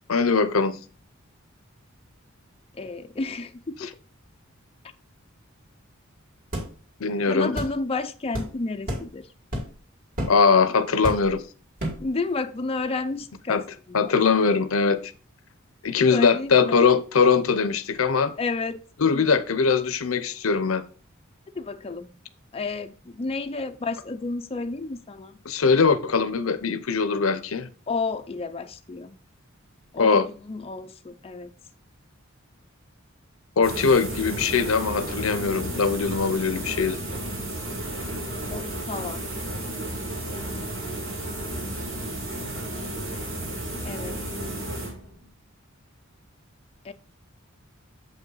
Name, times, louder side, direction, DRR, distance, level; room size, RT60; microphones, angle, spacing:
voice 1, 0.1-0.8 3.8-3.9 7.0-7.5 10.3-11.4 13.5-13.6 13.9-15.1 15.8-18.3 19.0-20.8 25.4-27.7 30.0-30.3 33.6-37.0, left 5 dB, 85° left, 0.7 m, -21 dB
voice 2, 2.7-3.9 7.2-9.3 12.0-14.1 16.1-16.8 18.4-18.8 21.6-22.1 22.5-25.4 27.9-29.2 29.9-31.5 38.5-39.2 43.8-44.2 46.8-46.9, left 3 dB, 30° left, 0.5 m, -31 dB
sound 1, 6.5-6.7 7.6-7.8 8.3-8.5 8.9-9.1 9.5-9.8 10.2-10.4 11.0-11.4 11.8-12.1, equal, 45° right, 2.5 m, -30 dB
sound 2, 33.6-45.3, right 1 dB, 85° right, 3.7 m, -33 dB
7.4 x 5.4 x 3.9 m
head